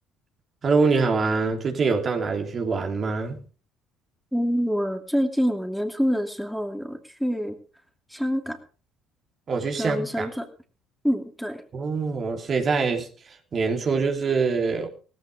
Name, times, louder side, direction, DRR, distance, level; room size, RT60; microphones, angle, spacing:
voice 1, 0.6-3.4 9.5-10.3 11.7-13.1 13.5-14.9, right 4 dB, 45° right, 3.3 m, -24 dB
voice 2, 4.3-7.6 8.1-8.6 9.8-10.5 11.0-11.6, equal, ahead, 2.7 m, -26 dB
17.5 x 15.5 x 3.6 m
hypercardioid pair, 65°, 0 cm